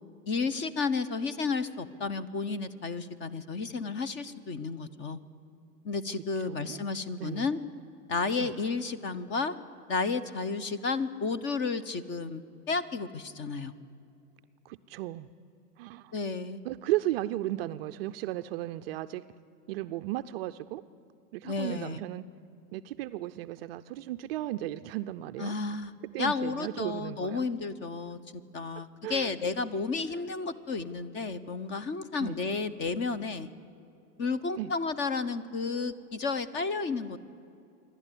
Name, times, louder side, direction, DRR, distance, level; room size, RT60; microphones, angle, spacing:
voice 1, 0.3-5.2 5.8-7.6 8.1-9.6 9.9-13.7 16.1-16.6 21.4-22.0 25.4-25.9 26.2-28.2 28.5-33.5 34.2-37.2, left 4 dB, 25° left, 16 dB, 0.8 m, -32 dB
voice 2, 6.4-6.8 7.2-7.5 8.4-8.5 14.6-15.3 15.8-16.1 16.6-19.2 19.7-20.8 21.3-22.2 22.7-25.5 26.1-27.5 29.0-29.3 32.2-32.4 34.6-34.7, right 15 dB, 40° right, 10 dB, 0.5 m, -35 dB
26.5 x 11.5 x 9.9 m, 2.6 s
hypercardioid pair, 120°, 48 cm